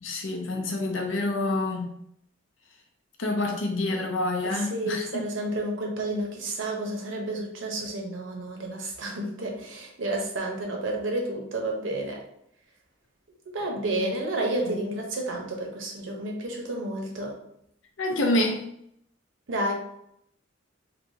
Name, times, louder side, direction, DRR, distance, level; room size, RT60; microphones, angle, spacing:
voice 1, 0.0-1.9 3.2-5.2 13.9-14.1 14.6-14.9 18.0-18.6, left 2 dB, 70° left, 2 dB, 0.7 m, -27 dB
voice 2, 4.4-12.2 13.5-17.3 19.5-19.7, right 1 dB, 70° right, 1 dB, 0.8 m, -31 dB
3.3 x 2.9 x 2.7 m, 0.73 s
head